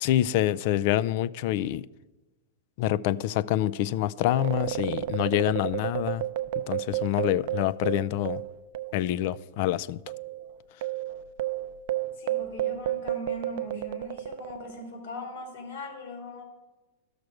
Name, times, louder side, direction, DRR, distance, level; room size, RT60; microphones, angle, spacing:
voice 1, 0.0-1.8 2.8-6.2 6.7-8.4 8.9-10.0, left 13 dB, 55° left, 0.4 m, -26 dB
sound 1, 4.2-9.1 9.3-9.5 10.1-14.8, right 14 dB, 60° right, 0.5 m, -32 dB
voice 2, 12.1-16.4, left 2 dB, 75° left, 3.4 m, -40 dB
12.5 x 6.5 x 4.8 m
hypercardioid pair, 120°, 0 cm